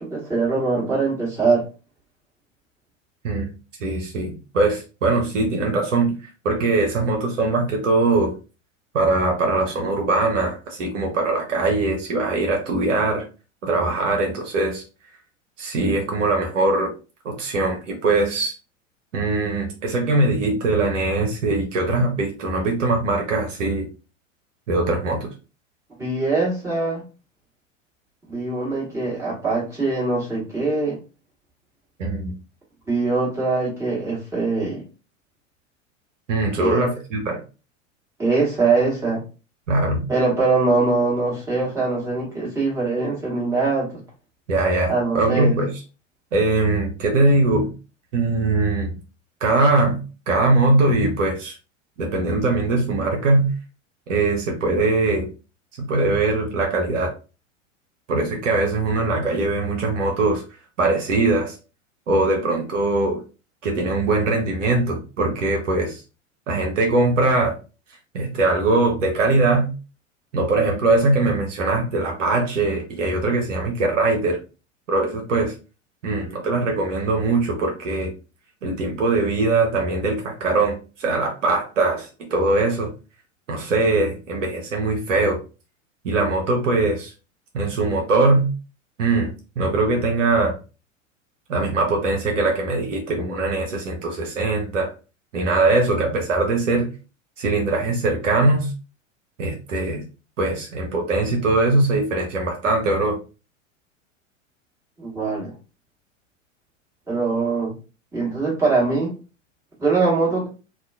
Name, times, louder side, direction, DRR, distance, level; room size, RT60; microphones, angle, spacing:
voice 1, 0.0-1.6 26.0-27.0 28.3-31.0 32.9-34.8 36.6-36.8 38.2-39.2 40.1-43.9 44.9-45.6 105.0-105.5 107.1-107.7 108.1-109.1 109.8-110.5, right 3 dB, 5° right, -6 dB, 1.6 m, -22 dB
voice 2, 3.8-6.1 6.4-8.3 8.9-13.3 13.6-14.8 15.6-16.9 17.2-18.5 19.1-23.9 24.7-25.3 32.0-32.3 36.3-37.4 39.7-40.0 44.5-45.7 46.3-47.7 48.1-48.9 49.4-50.0 50.3-51.5 52.0-53.5 54.1-55.3 55.8-57.1 58.1-60.4 60.8-61.6 62.1-63.2 63.6-66.0 66.5-67.6 68.1-69.7 70.3-74.4 74.9-75.5 76.0-78.1 78.6-82.9 83.5-85.4 86.0-87.1 87.5-88.5 89.0-90.6 91.5-94.9 95.3-96.9 97.4-98.7 99.4-100.0 100.4-103.2, right 2 dB, 70° right, 1 dB, 0.8 m, -21 dB
2.9 x 2.3 x 2.3 m, 0.32 s
figure-of-eight pair, 90°, 39 cm